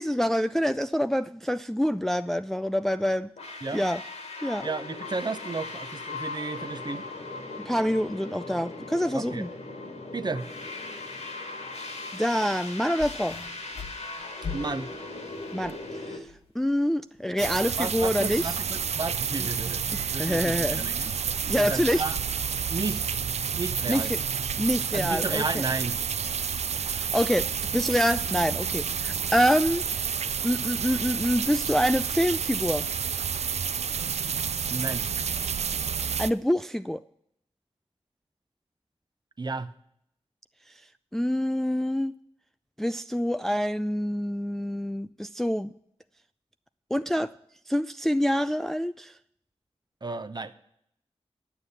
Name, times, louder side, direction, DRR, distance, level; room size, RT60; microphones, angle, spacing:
voice 1, 0.0-3.3 3.7-4.0 4.4-4.7 7.6-9.5 12.1-13.4 15.5-15.8 16.1-16.3 16.6-18.5 20.2-20.8 21.5-22.0 23.9-24.2 24.6-25.6 26.9-30.1 30.4-32.9 36.2-37.0 41.1-42.1 42.8-45.7 46.9-47.3 47.7-49.1, equal, 5° left, 11 dB, 0.3 m, -26 dB
sound 1, 3.4-16.2, left 3 dB, 80° left, 2.1 m, -38 dB
voice 2, 4.6-7.0 9.1-9.5 10.1-10.5 14.5-14.9 17.8-21.1 21.5-22.2 22.7-23.2 23.6-24.2 24.9-26.0 34.7-35.1 39.4-39.7 50.0-50.5, right 3 dB, 40° right, 11 dB, 0.8 m, -33 dB
sound 2, 13.0-15.8 16.2-16.6 17.4-17.5, left 4 dB, 60° left, 1.4 m, -40 dB
sound 3, 17.4-36.3, right 7 dB, 75° right, 0.4 m, -30 dB
10.0 x 7.1 x 8.1 m, 0.73 s
cardioid pair, 60°, 11 cm